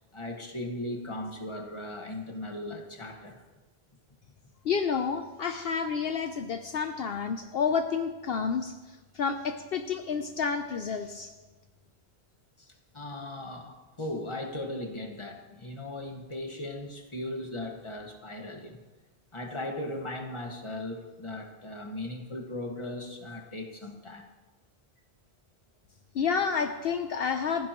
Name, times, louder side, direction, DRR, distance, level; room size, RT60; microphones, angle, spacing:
voice 1, 0.1-3.4 12.6-18.8 19.3-24.3, left 1 dB, 30° left, 2 dB, 1.6 m, -38 dB
voice 2, 4.6-11.3 26.1-27.7, left 6 dB, 70° left, 7 dB, 0.9 m, -30 dB
29.5 x 10.5 x 3.0 m, 1.2 s
omnidirectional pair, 1.1 m